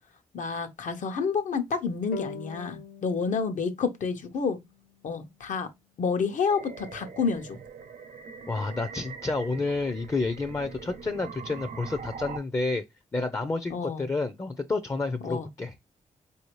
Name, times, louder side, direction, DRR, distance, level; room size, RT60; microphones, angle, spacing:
voice 1, 0.3-4.6 5.0-5.7 6.0-7.6 13.7-14.1 15.2-15.5, left 5 dB, 70° left, 0.9 m, -29 dB
sound 1, 2.1-5.4, left 4 dB, 85° left, 0.5 m, -43 dB
sound 2, 6.5-12.4, right 5 dB, 70° right, 0.7 m, -43 dB
voice 2, 8.5-12.8 13.1-15.7, left 3 dB, 20° left, 0.5 m, -30 dB
4.3 x 2.7 x 3.0 m
cardioid pair, 90°, 14 cm